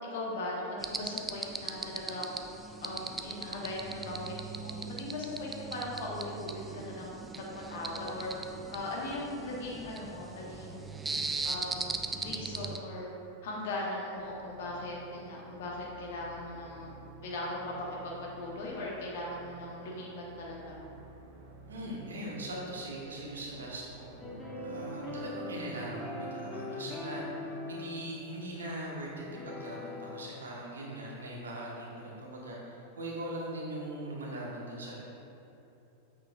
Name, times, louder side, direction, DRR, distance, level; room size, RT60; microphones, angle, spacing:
voice 1, 0.1-2.3 2.8-8.3 8.7-10.9 11.4-13.1 13.4-16.9 17.2-20.8 24.7-25.0, left 2 dB, 55° left, -3 dB, 1.4 m, -39 dB
sound 1, 0.8-12.8, right 3 dB, 15° right, 0.4 m, -39 dB
sound 2, 14.1-24.9, right 4 dB, 50° right, 0.7 m, -52 dB
voice 2, 21.7-24.1 24.6-35.0, right 1 dB, 70° right, -3 dB, 1.3 m, -40 dB
sound 3, 24.2-30.3, left 1 dB, 15° left, 1.0 m, -41 dB
8.0 x 6.4 x 2.4 m, 2.9 s
figure-of-eight pair, 90°, 0 cm